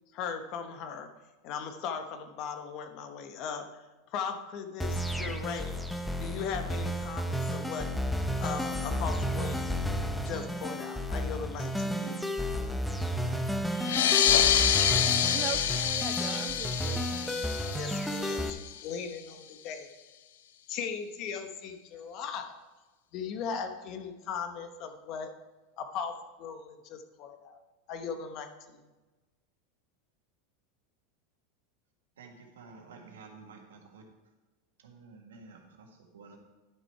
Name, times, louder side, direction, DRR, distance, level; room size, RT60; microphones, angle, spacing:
voice 1, 0.1-1.1 1.4-3.7 4.1-5.8 6.2-7.9 8.4-9.8 10.2-12.2 17.8-19.9 20.7-22.5 23.1-25.3 25.8-26.1 26.4-27.6 27.9-28.8, left 6 dB, 50° left, 7 dB, 1.1 m, -38 dB
sound 1, 4.8-18.5, equal, 5° left, 0.7 m, -32 dB
sound 2, 13.8-18.9, left 10 dB, 80° left, 0.6 m, -27 dB
voice 2, 15.3-17.5, right 10 dB, 40° right, 8 dB, 0.5 m, -40 dB
voice 3, 32.2-34.0 34.8-36.4, right 4 dB, 85° right, 2 dB, 1.7 m, -51 dB
11.0 x 6.2 x 4.7 m, 1.2 s
hypercardioid pair, 100°, 0 cm